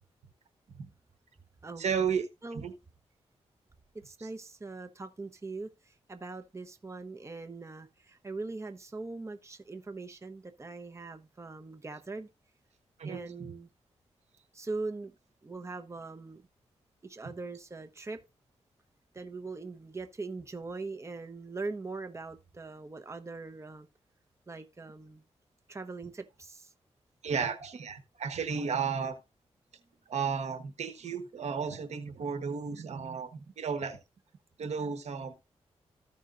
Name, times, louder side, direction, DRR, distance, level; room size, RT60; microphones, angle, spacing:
voice 1, 1.8-2.3 2.5-2.7 13.0-13.2 27.2-29.1 30.1-34.0 34.6-35.3, right 6 dB, 75° right, 1.2 m, -33 dB
voice 2, 3.9-12.3 13.0-13.7 14.5-15.1 15.4-16.4 17.0-18.2 19.1-23.9 24.5-25.2 25.7-26.7, right 3 dB, 25° right, 0.9 m, -41 dB
14.5 x 5.5 x 2.5 m
cardioid pair, 70°, 12 cm